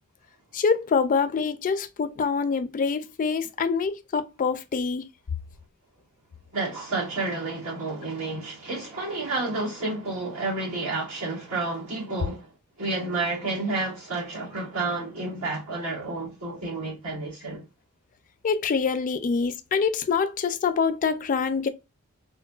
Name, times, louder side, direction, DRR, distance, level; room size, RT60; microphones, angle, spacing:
voice 1, 0.5-5.1 18.4-21.7, left 5 dB, 40° left, 0.3 m, -25 dB
voice 2, 6.5-12.5 12.8-17.6, right 3 dB, 75° right, 1.8 m, -30 dB
3.8 x 2.1 x 2.3 m
head